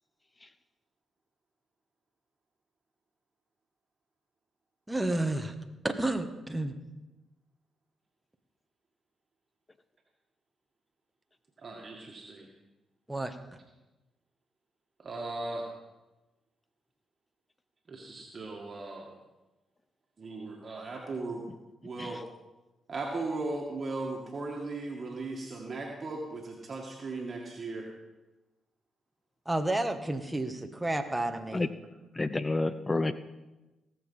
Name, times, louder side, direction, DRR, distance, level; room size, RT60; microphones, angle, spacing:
voice 1, 4.9-5.5 5.8-6.8 13.1-13.3 29.4-31.6, right 1 dB, 10° right, 6 dB, 1.4 m, -31 dB
voice 2, 11.6-12.5 15.0-15.7 17.9-19.1 20.2-21.4 21.8-22.2 22.9-27.9, right 3 dB, 45° right, 0 dB, 2.0 m, -37 dB
voice 3, 32.2-33.1, left 2 dB, 25° left, 14 dB, 0.6 m, -29 dB
18.0 x 7.2 x 5.6 m, 1.1 s
supercardioid pair, 50°, 0 cm